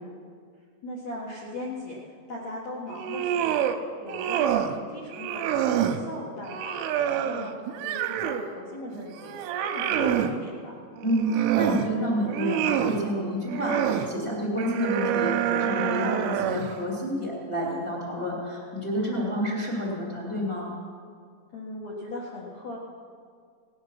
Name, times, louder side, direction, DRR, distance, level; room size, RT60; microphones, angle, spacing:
voice 1, 0.8-3.6 4.0-6.8 7.1-9.4 9.7-10.8 16.0-16.3 19.1-19.5 21.5-22.8, left 2 dB, 80° left, -4 dB, 1.5 m, -38 dB
sound 1, 2.9-3.8 4.1-4.8 5.1-6.0 6.5-8.5 8.9-10.3 11.0-11.9 12.3-13.0 13.5-14.1 14.6-16.7, right 10 dB, 85° right, 3.2 m, -27 dB
voice 2, 11.0-20.7, equal, 30° left, -4 dB, 0.5 m, -29 dB
18.5 x 9.7 x 5.8 m, 2.1 s
omnidirectional pair, 5.7 m